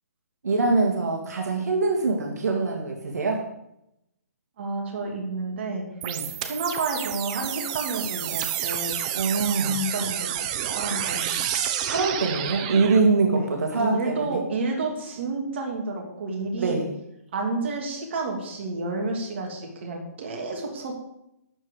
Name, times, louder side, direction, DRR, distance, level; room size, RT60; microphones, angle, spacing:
voice 1, 0.4-3.4 6.0-6.3 9.1-9.7 11.8-14.4 16.6-16.9, right 3 dB, 70° right, 1 dB, 2.2 m, -24 dB
voice 2, 4.6-5.8 6.4-9.0 9.5-11.3 13.3-13.5 13.7-16.8 17.3-20.9, right 3 dB, 45° right, 1 dB, 2.8 m, -30 dB
sound 1, 6.0-13.0, right 10 dB, 25° right, 0.8 m, -29 dB
12.5 x 4.8 x 8.3 m, 0.84 s
hypercardioid pair, 160°, 9 cm